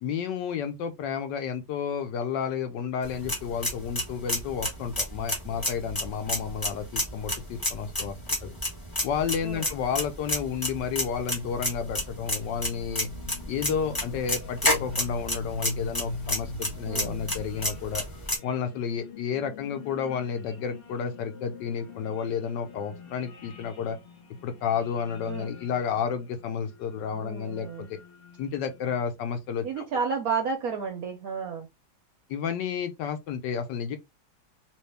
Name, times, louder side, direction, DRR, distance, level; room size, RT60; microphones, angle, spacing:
voice 1, 0.0-8.5 9.0-13.1 13.5-18.0 18.4-24.0 24.4-28.0 28.4-29.9 32.3-34.0, left 7 dB, 70° left, 1.2 m, -31 dB
sound 1, 3.0-18.4, left 1 dB, 20° left, 0.7 m, -31 dB
sound 2, 11.3-29.2, left 4 dB, 90° left, 0.5 m, -43 dB
voice 2, 16.9-17.2 25.3-25.5 27.1-27.9 29.6-31.7, right 5 dB, 70° right, 0.8 m, -31 dB
3.0 x 3.0 x 3.2 m
omnidirectional pair, 2.1 m